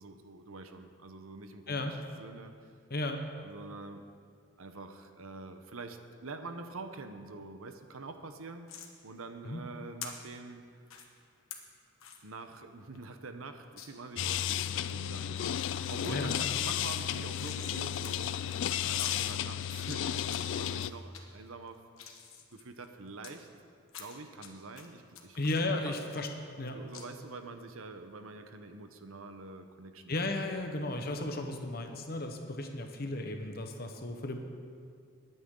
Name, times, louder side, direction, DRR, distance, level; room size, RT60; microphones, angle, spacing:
voice 1, 0.0-2.7 3.4-4.0 4.6-8.7 9.0-10.8 12.2-18.3 18.8-21.8 22.5-23.5 24.0-25.4 25.6-25.9 26.7-30.5, right 3 dB, 85° right, 7 dB, 0.9 m, -46 dB
voice 2, 2.9-3.2 9.4-9.6 16.1-16.4 25.4-26.3 26.6-26.8 30.1-34.4, left 2 dB, 45° left, 4 dB, 1.1 m, -34 dB
sound 1, 8.7-8.9 10.0-10.1 10.9-11.1 11.5-11.6 12.0-12.2 12.6-12.7 13.0-13.1 13.8-13.9 14.4-14.9 15.4-15.7 16.0-16.1 16.4-17.8 18.0-18.1 18.4-18.5 19.0-19.1 19.7-20.4 20.8-21.2 21.7-23.3 23.9-24.5 24.8-26.6 26.9-27.1, left 8 dB, 85° left, 1.4 m, -45 dB
sound 2, 14.2-20.9, left 10 dB, 60° left, 0.3 m, -33 dB
20.5 x 9.4 x 3.9 m, 2.2 s
head